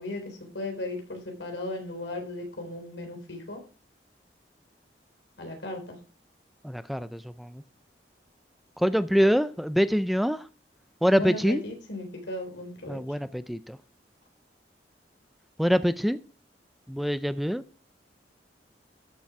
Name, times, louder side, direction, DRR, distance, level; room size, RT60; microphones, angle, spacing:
voice 1, 0.0-3.6 5.4-6.0 11.1-13.0, left 2 dB, 85° left, 3.8 m, -36 dB
voice 2, 6.6-7.6 8.8-10.5 11.0-11.6 12.9-13.8 15.6-16.2 16.9-17.6, equal, ahead, 0.4 m, -25 dB
13.0 x 6.9 x 4.8 m
head